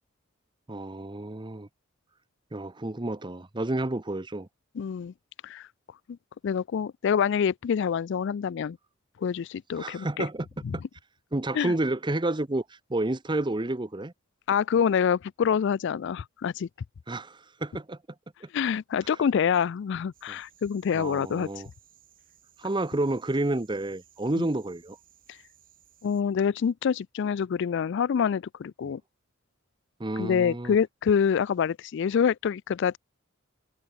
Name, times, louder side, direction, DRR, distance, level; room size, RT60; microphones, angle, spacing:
voice 1, 0.7-1.7 2.5-4.5 9.8-10.5 10.7-10.8 11.3-14.1 17.1-18.0 18.4-18.5 20.3-20.4 20.9-21.7 22.6-25.0 28.8-28.9 30.0-30.8, right 2 dB, 20° right, 0.8 m, -30 dB
voice 2, 4.8-5.1 5.4-5.7 6.4-8.8 9.2-10.3 10.6-10.8 11.5-11.7 14.5-16.7 18.5-21.5 24.4-24.5 26.0-29.0 30.2-33.0, left 7 dB, 60° left, 0.3 m, -26 dB
sound 1, 20.1-26.2, right 10 dB, 45° right, 7.4 m, -60 dB
head